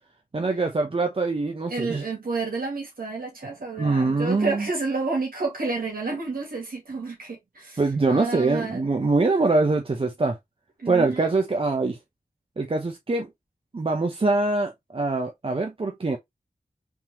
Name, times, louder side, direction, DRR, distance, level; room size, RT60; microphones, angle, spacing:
voice 1, 0.3-2.0 3.8-4.7 7.8-10.4 10.9-12.0 12.6-13.3 13.7-16.2, right 3 dB, 40° right, 0.6 m, -23 dB
voice 2, 1.7-7.8 8.1-8.8 10.8-11.3, right 3 dB, 85° right, 1.7 m, -30 dB
3.6 x 3.0 x 2.9 m
wide cardioid pair, 50°, 15 cm